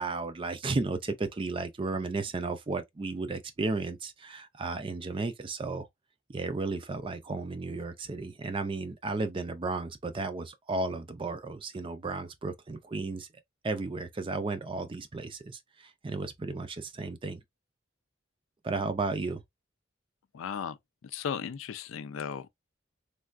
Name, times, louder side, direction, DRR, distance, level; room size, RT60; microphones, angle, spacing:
voice 1, 0.0-5.9 6.3-13.3 13.6-17.4 18.6-19.4, right 3 dB, 25° right, 0.4 m, -34 dB
voice 2, 20.3-20.8 21.0-22.5, left 7 dB, 85° left, 0.4 m, -36 dB
3.3 x 2.3 x 2.4 m
head